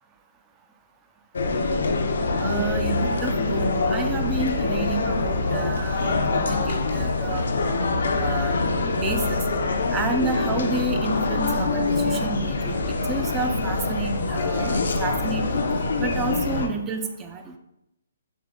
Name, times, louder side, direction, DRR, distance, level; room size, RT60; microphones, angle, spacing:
sound 1, 1.3-16.7, left 3 dB, 75° left, 0.5 m, -24 dB
voice 1, 2.4-7.5 8.2-8.6 9.0-9.5 9.9-15.7 16.0-17.5, right 3 dB, 15° right, 5 dB, 0.3 m, -30 dB
3.6 x 3.1 x 3.6 m, 0.85 s
hypercardioid pair, 160°, 0 cm